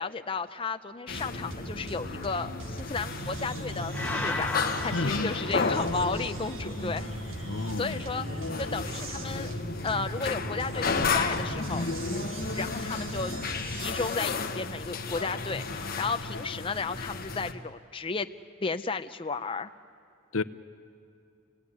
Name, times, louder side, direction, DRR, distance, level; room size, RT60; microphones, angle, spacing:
voice 1, 0.0-4.5 4.8-7.1 7.8-8.3 8.6-9.5 9.8-11.9 12.5-13.3 13.7-18.3 18.6-19.7, left 4 dB, 25° left, 8 dB, 0.6 m, -33 dB
sound 1, 1.1-17.5, left 4 dB, 45° left, 1.3 m, -33 dB
sound 2, 1.1-14.2, right 2 dB, 75° right, 1.6 m, -40 dB
sound 3, 3.9-6.2, left 3 dB, 10° left, 1.1 m, -35 dB
voice 2, 4.9-5.3 7.4-8.0 20.3-20.4, left 3 dB, 90° left, 12 dB, 0.8 m, -31 dB
28.5 x 18.0 x 9.7 m, 2.6 s
head